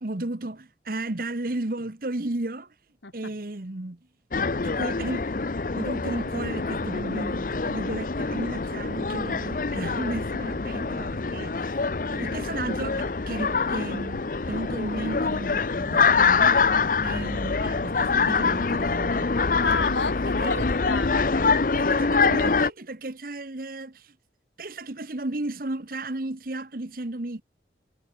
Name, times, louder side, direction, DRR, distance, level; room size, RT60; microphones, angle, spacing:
voice 1, 0.0-2.7 3.1-4.0 4.6-5.3 5.7-11.7 12.1-16.6 17.0-19.3 20.4-20.7 21.7-24.1 24.6-27.4, right 2 dB, 55° right, 1.2 m, -34 dB
sound 1, 4.3-22.7, left 4 dB, 50° left, 0.7 m, -25 dB
voice 2, 19.6-21.5, left 4 dB, 85° left, 2.8 m, -31 dB
head